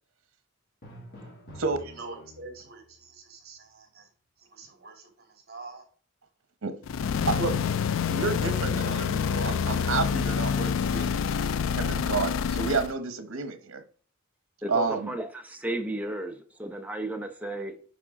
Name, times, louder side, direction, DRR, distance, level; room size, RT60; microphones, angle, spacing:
Drum, 0.8-2.8, equal, 50° left, 2.6 m, -47 dB
voice 1, 1.8-4.1 4.4-5.8, right 3 dB, 50° right, 2.7 m, -45 dB
sound 1, 6.8-12.9, left 7 dB, 70° left, 0.3 m, -27 dB
voice 2, 7.3-7.6 8.1-11.2 11.8-13.8 14.7-15.1, right 4 dB, 90° right, 0.9 m, -30 dB
voice 3, 14.6-17.8, right 1 dB, 5° right, 0.8 m, -34 dB
9.1 x 5.0 x 3.7 m
head